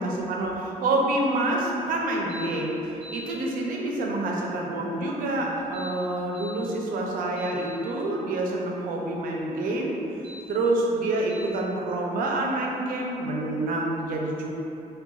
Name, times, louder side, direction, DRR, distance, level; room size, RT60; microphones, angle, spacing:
voice 1, 0.0-14.5, right 2 dB, 75° right, -1 dB, 0.5 m, -27 dB
sound 1, 2.3-2.5 2.8-3.2 5.6-6.5 7.0-7.8 10.1-10.4 11.3-11.5, left 1 dB, 20° left, 1.0 m, -44 dB
3.9 x 2.2 x 2.3 m, 2.8 s
cardioid pair, 155°, 14 cm